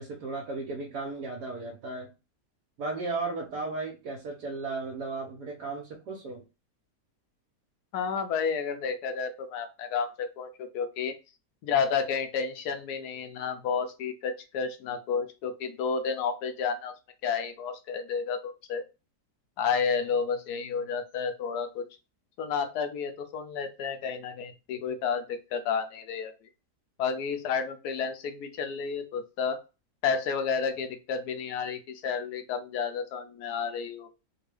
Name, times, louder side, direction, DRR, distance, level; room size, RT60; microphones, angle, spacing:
voice 1, 0.0-2.1 2.8-6.4, right 3 dB, 80° right, -1 dB, 1.4 m, -35 dB
voice 2, 7.9-11.1 11.6-16.9 17.2-18.8 19.6-21.8 22.4-26.3 27.0-29.6 30.0-34.1, left 6 dB, 75° left, 7 dB, 1.1 m, -31 dB
3.5 x 2.2 x 3.2 m, 0.28 s
omnidirectional pair, 1.7 m